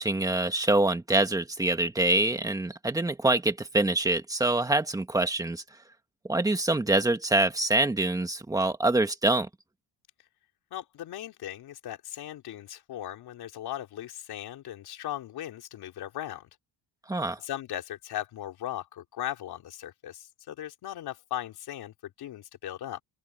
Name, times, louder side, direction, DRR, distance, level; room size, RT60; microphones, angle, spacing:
voice 1, 0.0-5.6 6.2-9.5 17.1-17.4, right 2 dB, 10° right, 1.7 m, -25 dB
voice 2, 10.7-16.5 17.4-23.0, left 12 dB, 55° left, 3.4 m, -38 dB
open air
cardioid pair, 165°, 46 cm